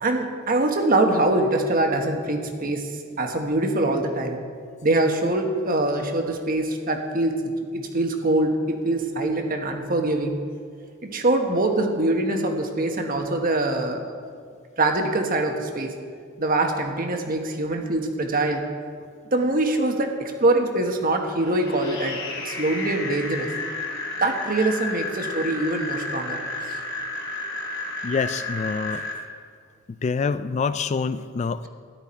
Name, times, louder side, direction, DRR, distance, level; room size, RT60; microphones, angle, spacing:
voice 1, 0.0-4.4 4.8-7.4 7.7-10.4 11.0-14.0 14.8-15.9 16.4-18.6 19.3-22.2 22.4-23.5 24.2-26.8, right 2 dB, 45° right, 3 dB, 1.3 m, -23 dB
sound 1, 21.4-29.1, left 2 dB, 65° left, 3.1 m, -32 dB
voice 2, 28.0-29.1 29.9-31.7, left 5 dB, 35° left, 13 dB, 0.3 m, -26 dB
13.5 x 11.0 x 4.4 m, 2.1 s
head